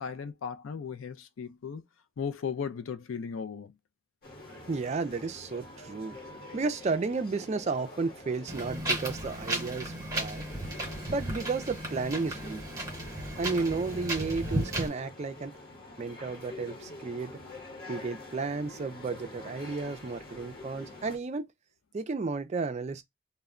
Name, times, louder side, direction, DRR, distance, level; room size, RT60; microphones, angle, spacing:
voice 1, 0.0-1.8 2.2-3.7, left 6 dB, 70° left, 0.4 m, -36 dB
sound 1, 4.2-21.2, left 2 dB, 45° left, 0.9 m, -47 dB
voice 2, 4.7-6.2 6.5-10.4 11.1-12.6 13.4-15.6 16.0-17.3 17.9-21.5 21.9-23.0, right 4 dB, 30° right, 0.3 m, -33 dB
Wind, 8.5-14.9, right 1 dB, 15° right, 0.9 m, -34 dB
2.2 x 2.1 x 3.5 m
head